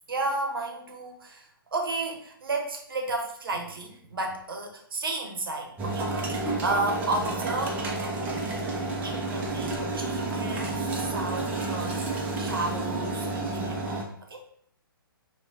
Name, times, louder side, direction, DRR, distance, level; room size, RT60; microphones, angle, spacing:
voice 1, 0.1-7.8 9.0-14.0 14.3-14.4, right 2 dB, 70° right, 2 dB, 0.8 m, -33 dB
sound 1, 5.8-14.0, right 2 dB, 15° right, 0.5 m, -30 dB
4.3 x 2.2 x 2.7 m, 0.66 s
figure-of-eight pair, 125°, 12 cm